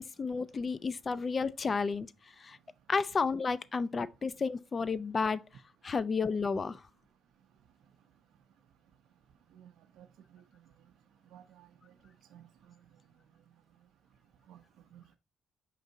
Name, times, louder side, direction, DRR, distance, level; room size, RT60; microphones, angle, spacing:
voice 1, 0.0-2.1 2.4-2.6 2.9-5.4 5.8-6.8, left 4 dB, 35° left, 0.3 m, -32 dB
voice 2, 9.5-10.1 10.3-10.4 11.3-11.7 12.3-12.8 14.5-14.6 14.9-15.2, right 10 dB, 85° right, 0.5 m, -55 dB
5.2 x 2.6 x 3.8 m
cardioid pair, 90°, 0 cm